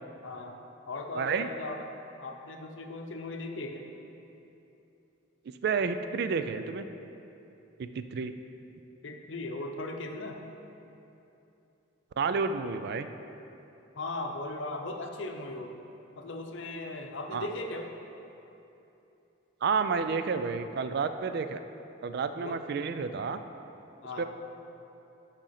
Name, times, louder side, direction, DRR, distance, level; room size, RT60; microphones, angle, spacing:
voice 1, 0.2-0.6 0.9-1.8 2.2-3.9 9.0-10.4 13.9-15.7 16.2-17.9 22.4-22.6 24.0-24.3, left 2 dB, 70° left, 3 dB, 0.7 m, -38 dB
voice 2, 1.1-1.5 5.6-6.8 7.8-8.3 12.2-13.1 17.3-17.5 19.6-21.6 22.0-23.4 24.2-24.3, right 5 dB, 55° right, 10 dB, 0.3 m, -30 dB
6.4 x 5.0 x 5.7 m, 2.9 s
head